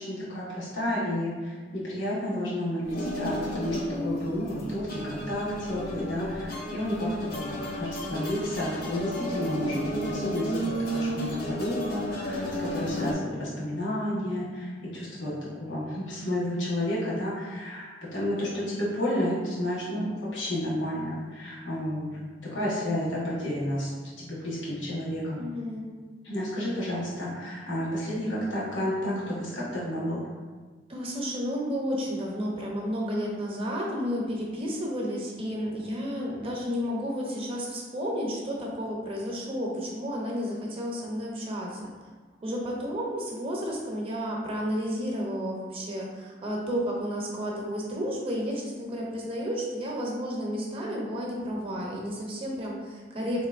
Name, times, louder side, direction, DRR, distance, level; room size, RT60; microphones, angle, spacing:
voice 1, 0.0-23.9 24.2-25.4 26.2-30.3, left 1 dB, 80° left, -7 dB, 1.1 m, -31 dB
sound 1, 2.8-13.1, equal, 50° left, 0.6 m, -33 dB
voice 2, 25.3-25.9 30.9-41.8 42.4-53.5, equal, 30° right, -2 dB, 0.6 m, -32 dB
3.8 x 2.9 x 2.4 m, 1.4 s
head